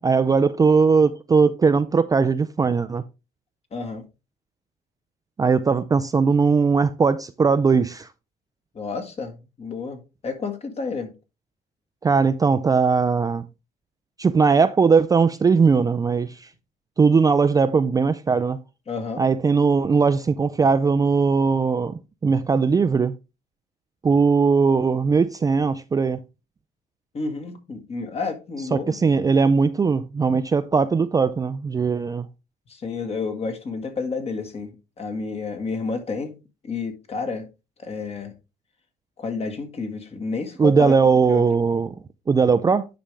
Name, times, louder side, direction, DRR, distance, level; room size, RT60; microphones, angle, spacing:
voice 1, 0.0-3.0 5.4-8.1 12.0-13.4 14.2-16.5 17.0-18.6 19.2-23.1 24.0-26.2 28.7-32.3 40.6-42.0 42.3-42.9, right 5 dB, 20° right, 0.4 m, -19 dB
voice 2, 3.7-4.0 8.7-11.1 18.9-19.2 27.1-29.0 32.7-36.4 36.6-37.4 37.8-38.3 39.2-41.0 41.3-41.4, left 4 dB, 35° left, 1.7 m, -30 dB
10.0 x 5.1 x 3.3 m
cardioid pair, 110°, 17 cm